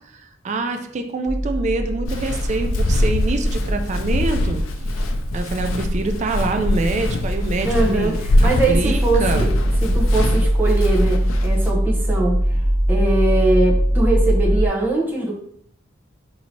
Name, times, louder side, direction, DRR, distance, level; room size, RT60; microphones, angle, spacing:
voice 1, 0.1-4.6 5.0-5.1 5.3-9.5, right 3 dB, 35° right, 6 dB, 0.4 m, -25 dB
sound 1, 1.3-14.7, equal, 20° left, 1.2 m, -22 dB
Walk footsteps, 2.0-11.7, left 1 dB, 85° left, 0.4 m, -23 dB
voice 2, 7.6-12.6 12.9-15.3, right 2 dB, 10° right, -4 dB, 0.8 m, -22 dB
2.7 x 2.7 x 4.4 m, 0.70 s
head